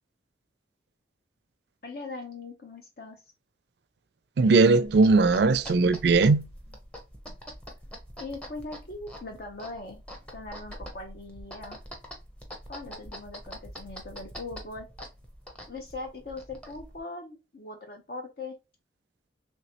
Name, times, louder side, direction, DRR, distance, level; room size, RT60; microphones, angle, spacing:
voice 1, 1.8-3.2 8.2-10.0 10.3-11.8 12.7-14.9 15.7-18.6, left 3 dB, 55° left, 0.6 m, -40 dB
voice 2, 4.4-6.5, right 3 dB, 65° right, 0.4 m, -19 dB
sound 1, 4.8-17.0, equal, 5° left, 0.7 m, -44 dB
3.2 x 3.1 x 2.7 m
head